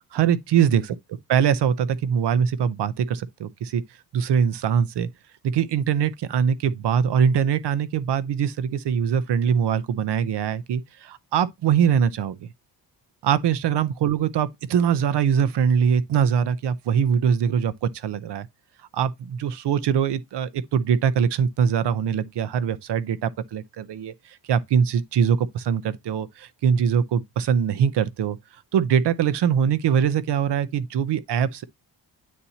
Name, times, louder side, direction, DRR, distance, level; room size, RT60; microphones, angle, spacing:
voice 1, 0.1-0.8 1.3-3.8 4.1-5.1 5.4-12.4 13.2-18.5 18.9-28.4 28.7-31.6, right 7 dB, 75° right, 0.8 m, -22 dB
9.5 x 4.2 x 2.8 m
wide cardioid pair, 145°, 41 cm